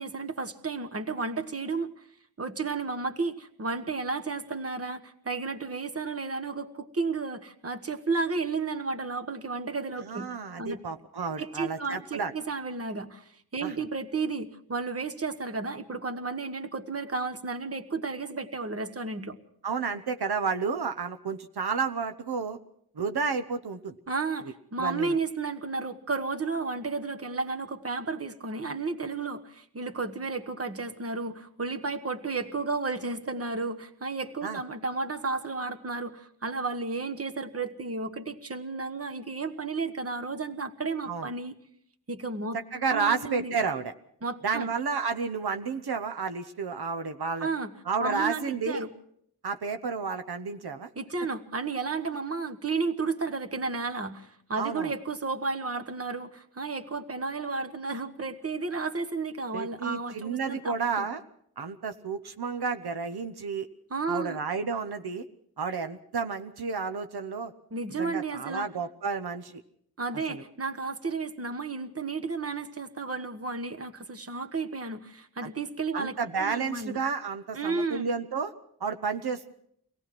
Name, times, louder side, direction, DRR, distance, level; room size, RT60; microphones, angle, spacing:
voice 1, 0.0-1.9 2.4-10.3 10.6-10.8 11.4-19.4 24.1-41.5 42.1-42.6 42.9-43.5 44.2-44.7 47.4-47.7 48.0-48.9 51.0-61.1 63.9-64.4 67.7-68.7 70.0-77.0 77.5-78.1, right 4 dB, 40° right, 7 dB, 1.4 m, -33 dB
voice 2, 10.0-12.3 13.6-13.7 19.6-22.6 22.9-24.0 24.8-25.2 34.4-34.6 41.1-41.3 42.7-43.9 44.4-47.5 47.8-48.8 49.4-50.9 54.6-54.9 59.5-61.2 61.6-63.7 64.1-65.2 65.6-67.5 68.0-69.6 70.3-70.4 75.4-75.5 75.9-78.5 78.8-79.5, right 5 dB, 80° right, 8 dB, 1.0 m, -31 dB
24.0 x 18.0 x 6.1 m, 0.67 s
wide cardioid pair, 100°, 38 cm